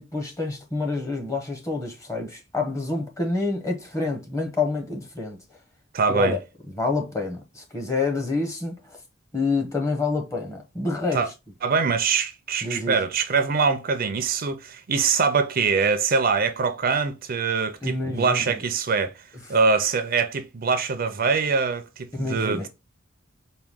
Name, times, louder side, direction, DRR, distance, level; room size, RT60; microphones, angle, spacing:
voice 1, 0.0-5.4 6.1-6.4 6.7-8.8 9.3-11.2 12.6-13.0 17.8-18.6 22.1-22.7, left 3 dB, 15° left, 1.0 m, -27 dB
voice 2, 5.9-6.4 11.1-11.3 11.6-19.1 19.5-22.7, right 5 dB, 50° right, 0.5 m, -23 dB
4.6 x 2.3 x 3.6 m
head